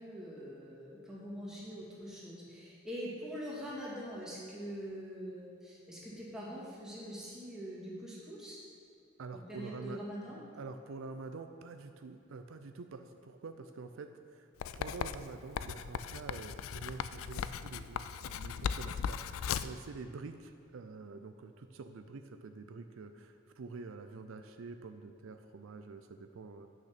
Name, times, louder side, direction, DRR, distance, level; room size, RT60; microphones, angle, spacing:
voice 1, 0.0-8.6 9.3-10.4, equal, 5° right, -7 dB, 2.2 m, -44 dB
voice 2, 9.2-10.0 10.5-14.5 14.7-26.7, right 4 dB, 75° right, 7 dB, 0.4 m, -47 dB
Writing, 14.6-19.8, left 7 dB, 85° left, 0.3 m, -38 dB
9.1 x 6.1 x 5.9 m, 2.4 s
head